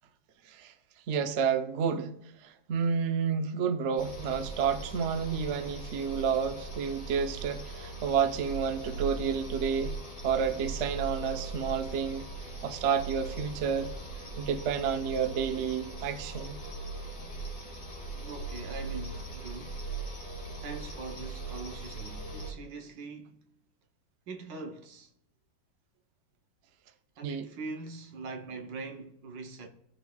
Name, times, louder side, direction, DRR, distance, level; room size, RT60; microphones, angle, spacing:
voice 1, 1.1-2.1 2.4-9.9 10.2-12.3 12.6-13.9 14.4-16.6 27.2-27.5, right 6 dB, 85° right, 0.6 m, -30 dB
sound 1, 4.0-22.5, right 3 dB, 40° left, 2.7 m, -40 dB
voice 2, 18.1-19.9 20.6-23.5 24.3-25.1 27.2-29.7, right 4 dB, 70° right, 1.6 m, -42 dB
16.0 x 5.9 x 2.3 m
omnidirectional pair, 2.1 m